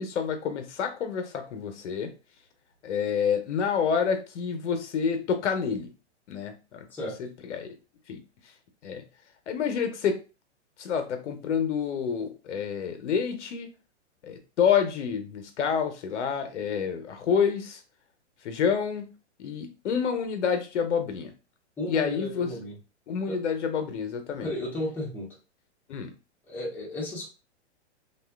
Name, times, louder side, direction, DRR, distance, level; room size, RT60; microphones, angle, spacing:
voice 1, 0.0-2.1 2.8-5.9 6.3-6.9 7.2-7.7 8.1-8.2 8.8-9.0 9.5-10.2 10.8-13.7 14.2-17.8 18.4-21.3 21.9-22.5 23.1-24.5 25.9-26.1, left 7 dB, 80° left, 7 dB, 0.7 m, -28 dB
voice 2, 21.8-22.8 23.3-23.4 24.3-25.4 26.5-27.3, left 1 dB, 5° left, -4 dB, 0.7 m, -34 dB
2.7 x 2.2 x 2.3 m, 0.32 s
hypercardioid pair, 125°, 35 cm